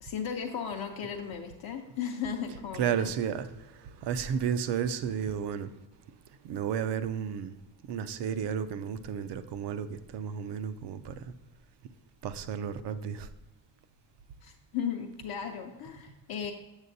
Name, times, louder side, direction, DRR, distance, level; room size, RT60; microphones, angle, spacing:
voice 1, 0.0-3.1 14.4-16.5, left 7 dB, 55° left, 2 dB, 0.6 m, -36 dB
voice 2, 2.7-5.7 6.4-7.6 7.8-11.2 12.2-13.3, right 8 dB, 65° right, 12 dB, 0.5 m, -32 dB
8.0 x 6.6 x 2.6 m, 1.1 s
cardioid pair, 165°, 46 cm